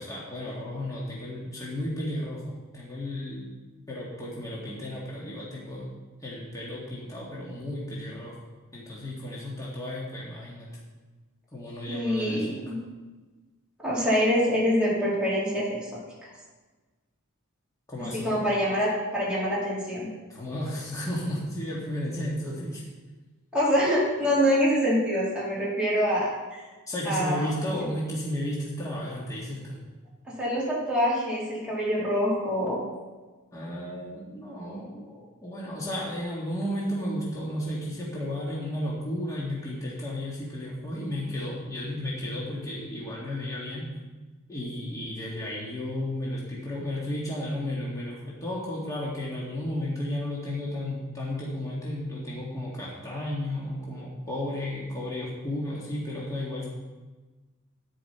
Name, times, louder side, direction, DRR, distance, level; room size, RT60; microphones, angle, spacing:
voice 1, 0.0-3.5 3.9-5.9 6.2-8.4 8.7-10.7 11.5-12.6 17.9-18.3 20.3-22.8 26.9-29.8 33.5-43.9 44.5-56.7, left 1 dB, 15° left, -6 dB, 1.8 m, -33 dB
voice 2, 11.9-12.8 13.8-16.3 18.1-20.1 23.5-26.7 27.1-27.5 27.8-27.9 30.3-32.8, equal, 5° right, -8 dB, 3.6 m, -25 dB
10.0 x 9.4 x 4.4 m, 1.3 s
head